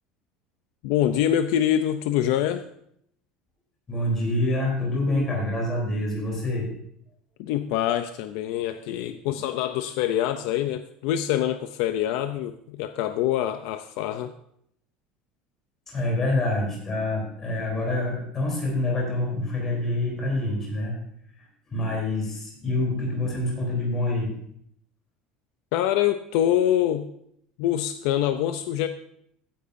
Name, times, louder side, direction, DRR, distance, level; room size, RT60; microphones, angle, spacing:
voice 1, 0.8-2.6 7.4-14.3 25.7-27.1 27.6-28.9, left 11 dB, 60° left, 10 dB, 0.5 m, -25 dB
voice 2, 3.9-6.7 15.9-20.9 21.7-24.3, left 1 dB, 15° left, -2 dB, 3.4 m, -26 dB
15.0 x 10.0 x 2.6 m, 0.71 s
cardioid pair, 180°, 3 cm